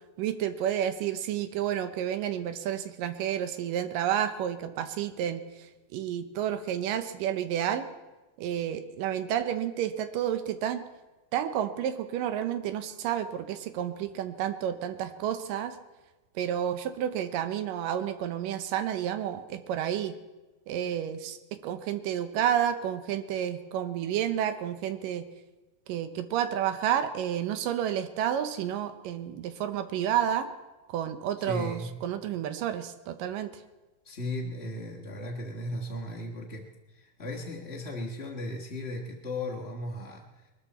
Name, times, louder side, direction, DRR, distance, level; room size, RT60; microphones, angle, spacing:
voice 1, 0.2-5.4 5.9-7.9 8.4-10.8 11.3-15.8 16.4-20.1 20.7-21.4 21.6-25.2 25.9-30.5 30.9-33.5, right 10 dB, 80° right, 10 dB, 2.6 m, -30 dB
voice 2, 31.4-32.0 34.0-40.5, left 1 dB, 85° left, -1 dB, 0.5 m, -36 dB
22.0 x 13.0 x 4.2 m, 1.1 s
omnidirectional pair, 3.9 m